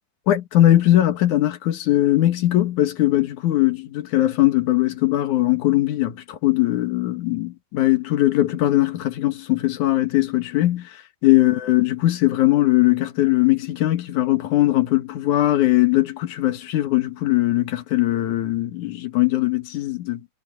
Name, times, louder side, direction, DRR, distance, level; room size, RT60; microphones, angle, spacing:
voice 1, 0.3-10.9 11.2-20.2, left 15 dB, 70° left, 2.9 m, -20 dB
omnidirectional pair, 3.6 m